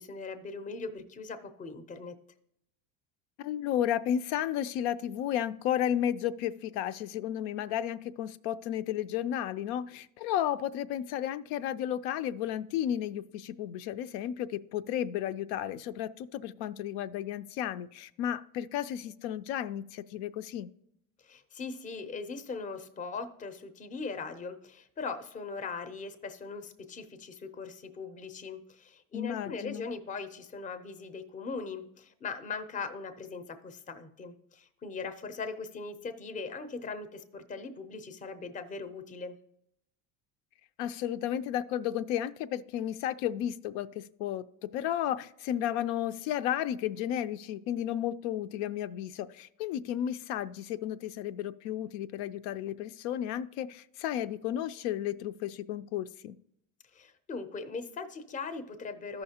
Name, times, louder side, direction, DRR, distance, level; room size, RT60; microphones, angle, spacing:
voice 1, 0.0-2.2 21.2-39.4 56.9-59.2, left 4 dB, 20° left, 9 dB, 0.5 m, -40 dB
voice 2, 3.4-20.7 29.1-29.9 40.8-56.3, left 11 dB, 80° left, 12 dB, 0.5 m, -33 dB
14.0 x 5.7 x 2.8 m, 0.76 s
cardioid pair, 150°, 43 cm